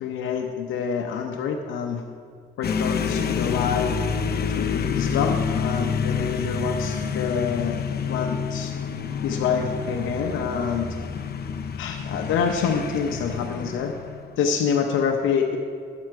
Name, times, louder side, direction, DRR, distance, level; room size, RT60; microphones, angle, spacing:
voice 1, 0.0-2.0 2.6-4.0 4.6-7.8 8.1-8.7 9.2-11.0 11.8-13.9 14.4-15.6, left 6 dB, 85° left, 3 dB, 0.8 m, -26 dB
sound 1, 2.6-14.4, left 6 dB, 50° left, 0.8 m, -28 dB
12.5 x 7.8 x 4.7 m, 2.2 s
cardioid pair, 90°, 20 cm